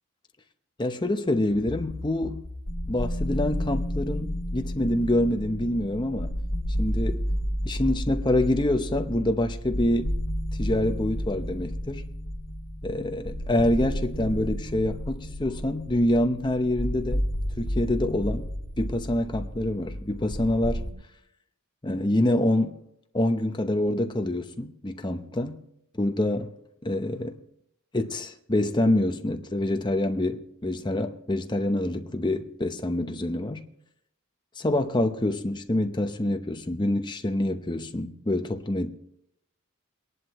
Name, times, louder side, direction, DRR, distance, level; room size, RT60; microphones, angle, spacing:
voice 1, 0.8-2.4 2.9-6.3 6.8-7.3 7.6-10.1 10.6-12.1 12.8-17.3 17.6-20.8 21.8-22.8 23.1-25.6 26.0-26.5 26.8-27.4 27.9-33.6 34.6-38.9, left 1 dB, 20° left, 0.8 m, -26 dB
sound 1, 1.5-20.9, equal, 60° left, 3.0 m, -32 dB
22.5 x 11.0 x 3.1 m
head